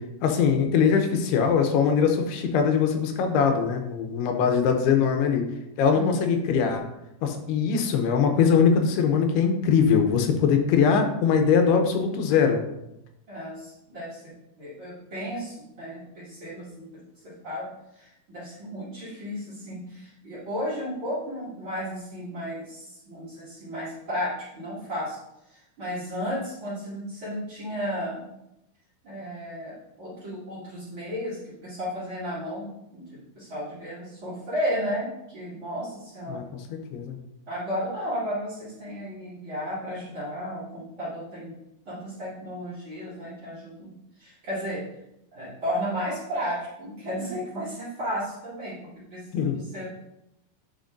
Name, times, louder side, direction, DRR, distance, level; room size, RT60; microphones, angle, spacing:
voice 1, 0.2-5.4 5.8-6.8 7.2-12.6 36.3-36.4 36.9-37.2 49.3-49.6, left 6 dB, 85° left, 5 dB, 2.7 m, -22 dB
voice 2, 5.9-6.3 13.3-14.2 14.6-16.9 17.2-17.7 17.9-25.2 25.5-28.3 29.0-36.4 37.5-41.5 41.8-43.9 44.2-44.8 45.3-49.9, equal, 35° right, -9 dB, 2.5 m, -33 dB
10.5 x 5.0 x 2.6 m, 0.87 s
omnidirectional pair, 4.7 m